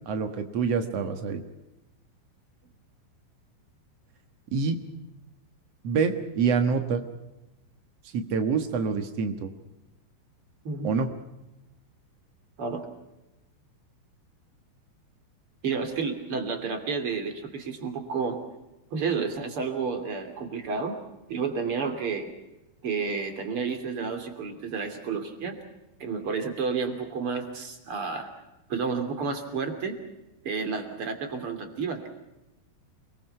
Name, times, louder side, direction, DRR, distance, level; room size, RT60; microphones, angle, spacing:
voice 1, 0.0-1.4 4.5-4.8 5.8-7.0 8.1-9.5 10.8-11.1, right 5 dB, 90° right, 7 dB, 1.4 m, -26 dB
voice 2, 10.6-11.0 12.6-12.9 15.6-18.4 18.9-20.9 21.3-22.3 22.8-25.5 26.0-28.3 28.7-30.0 30.4-32.1, right 5 dB, 35° right, 6 dB, 3.0 m, -31 dB
29.0 x 22.0 x 5.6 m, 0.96 s
omnidirectional pair, 5.5 m